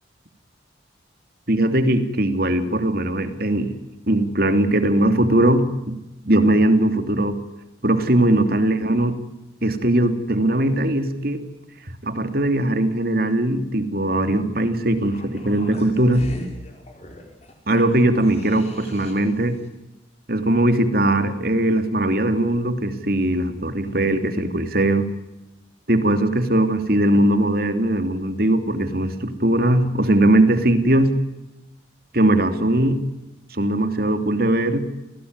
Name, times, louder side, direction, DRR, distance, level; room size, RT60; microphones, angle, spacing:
voice 1, 1.5-3.7 4.1-6.0 6.2-7.4 7.8-9.2 9.6-11.4 12.0-16.3 17.7-19.6 20.3-25.1 25.9-31.1 32.1-33.0 33.5-34.9, right 1 dB, 50° right, 9 dB, 3.0 m, -20 dB
sound 1, 15.0-19.4 19.7-19.8, equal, 35° left, 5.7 m, -40 dB
29.5 x 19.0 x 9.7 m, 0.98 s
head